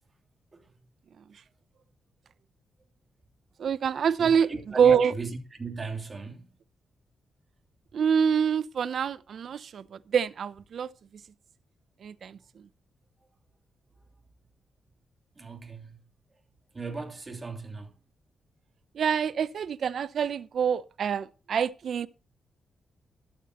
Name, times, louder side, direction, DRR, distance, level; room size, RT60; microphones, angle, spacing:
voice 1, 3.6-4.5 4.8-5.1 7.9-10.9 12.0-12.4 19.0-22.1, right 7 dB, 65° right, 0.6 m, -26 dB
voice 2, 4.2-6.5 15.4-16.0 16.7-17.9, right 3 dB, 30° right, 3.1 m, -38 dB
12.5 x 12.0 x 3.0 m
cardioid pair, 75°, 0 cm